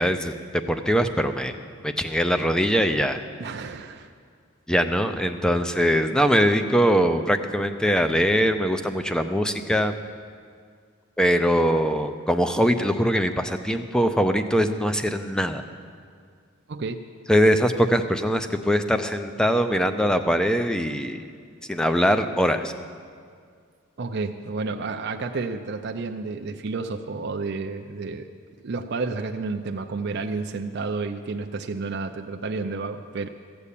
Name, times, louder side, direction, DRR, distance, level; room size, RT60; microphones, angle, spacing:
voice 1, 0.0-1.6 1.8-3.2 4.7-9.9 11.2-15.6 17.3-21.2 21.7-22.7, equal, 5° left, 8 dB, 0.5 m, -22 dB
voice 2, 3.4-4.1 16.7-17.0 24.0-28.3 28.6-33.3, right 3 dB, 55° right, 4 dB, 0.5 m, -31 dB
15.0 x 7.1 x 8.3 m, 2.1 s
head